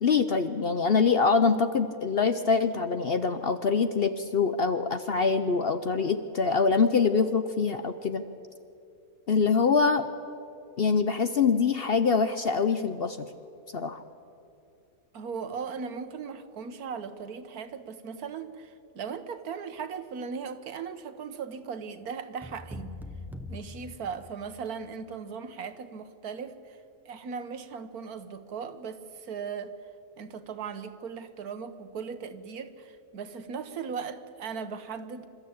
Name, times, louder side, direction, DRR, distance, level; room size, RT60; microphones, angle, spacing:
voice 1, 0.0-8.3 9.3-10.0 10.8-13.2 13.7-14.0, left 5 dB, 50° left, 10 dB, 0.8 m, -24 dB
voice 2, 15.1-22.9 23.5-26.8 27.0-29.8 30.2-35.3, right 6 dB, 75° right, 10 dB, 1.6 m, -38 dB
sound 1, 22.4-24.7, left 2 dB, ahead, 0.9 m, -42 dB
28.0 x 13.0 x 8.6 m, 2.6 s
omnidirectional pair, 1.6 m